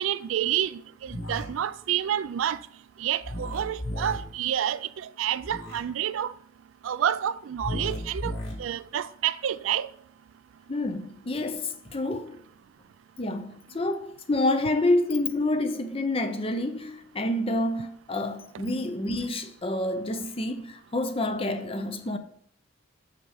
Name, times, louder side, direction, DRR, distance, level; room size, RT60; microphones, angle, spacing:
voice 1, 0.0-2.6 3.0-6.3 6.8-8.3 8.6-9.9, right 10 dB, 80° right, 0.3 m, -29 dB
sound 1, 1.0-1.4 3.2-4.2 5.4-5.8 7.6-8.5, left 1 dB, 80° left, 3.4 m, -34 dB
voice 2, 10.7-12.4 13.2-22.2, left 2 dB, 30° left, 0.6 m, -28 dB
6.4 x 5.9 x 4.8 m
head